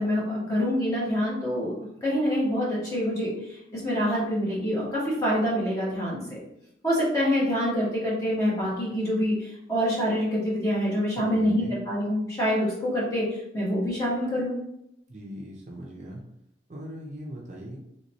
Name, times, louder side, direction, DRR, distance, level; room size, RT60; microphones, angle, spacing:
voice 1, 0.0-1.7 2.0-6.4 6.8-14.6, equal, 20° left, -7 dB, 1.2 m, -26 dB
voice 2, 11.2-11.8 15.1-16.2 16.7-17.8, right 1 dB, 40° right, -2 dB, 0.5 m, -39 dB
3.2 x 3.0 x 2.7 m, 0.79 s
head